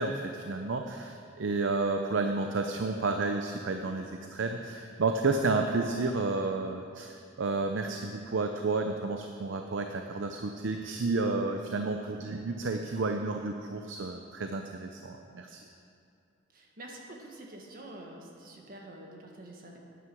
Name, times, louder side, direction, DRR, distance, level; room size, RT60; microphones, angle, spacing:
voice 1, 0.0-15.6, right 3 dB, 80° right, 5 dB, 0.6 m, -31 dB
voice 2, 16.5-19.8, right 1 dB, 50° right, 0 dB, 1.6 m, -47 dB
9.4 x 9.4 x 6.2 m, 2.5 s
head